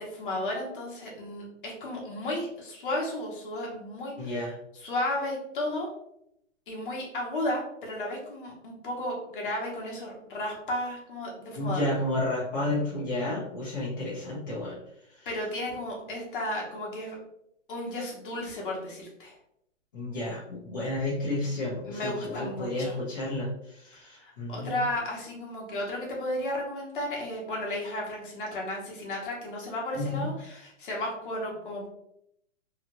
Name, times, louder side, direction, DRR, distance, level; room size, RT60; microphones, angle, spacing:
voice 1, 0.0-4.4 4.7-5.9 6.7-11.9 15.3-17.2 17.7-19.3 21.9-23.0 24.2-31.9, left 1 dB, 40° left, -2 dB, 1.0 m, -33 dB
voice 2, 4.2-4.5 11.5-14.8 15.2-15.3 19.9-24.7 29.9-30.3, left 1 dB, 15° left, -7 dB, 0.7 m, -31 dB
2.9 x 2.3 x 2.8 m, 0.77 s
hypercardioid pair, 175°, 38 cm